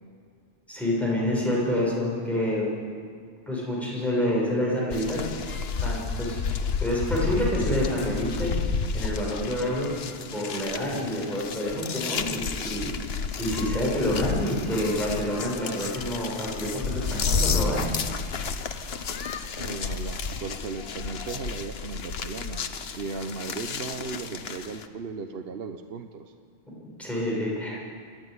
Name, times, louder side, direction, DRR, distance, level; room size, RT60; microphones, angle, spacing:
voice 1, 0.7-2.8 3.5-5.2 5.8-6.4 6.8-8.5 8.9-9.9 10.3-12.9 13.4-17.9 27.0-27.8, left 1 dB, ahead, -5 dB, 6.9 m, -27 dB
sound 1, 4.9-24.9, left 5 dB, 65° left, 1.2 m, -31 dB
voice 2, 19.6-22.6 22.9-26.3, right 4 dB, 65° right, 7 dB, 1.1 m, -36 dB
28.0 x 11.0 x 9.7 m, 2.1 s
omnidirectional pair, 1.1 m